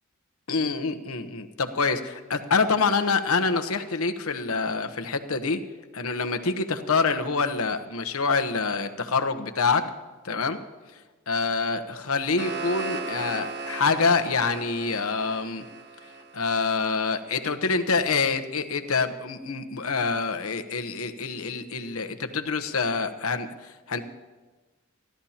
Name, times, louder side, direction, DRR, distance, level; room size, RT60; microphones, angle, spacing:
voice 1, 0.5-5.6 5.9-9.9 10.2-10.6 11.3-15.6 16.3-23.5 23.9-24.0, left 4 dB, 85° left, 8 dB, 1.0 m, -26 dB
sound 1, 12.0-17.0, right 4 dB, 50° right, 1.2 m, -36 dB
29.5 x 13.0 x 2.9 m, 1.3 s
head